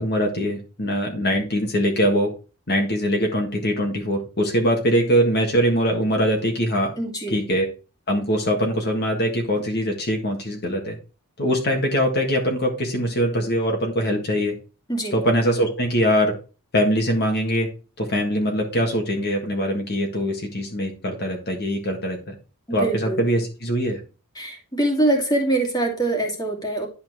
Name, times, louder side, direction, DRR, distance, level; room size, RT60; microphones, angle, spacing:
voice 1, 0.0-2.3 2.7-6.9 7.3-7.7 8.1-11.0 11.4-14.5 15.1-16.3 16.7-17.7 18.0-22.3 22.7-24.0, equal, 50° left, 1 dB, 1.7 m, -22 dB
voice 2, 7.0-7.4 14.9-15.2 22.7-23.2 24.3-26.9, right 2 dB, 20° left, 1 dB, 2.5 m, -24 dB
11.0 x 4.3 x 4.6 m, 0.34 s
head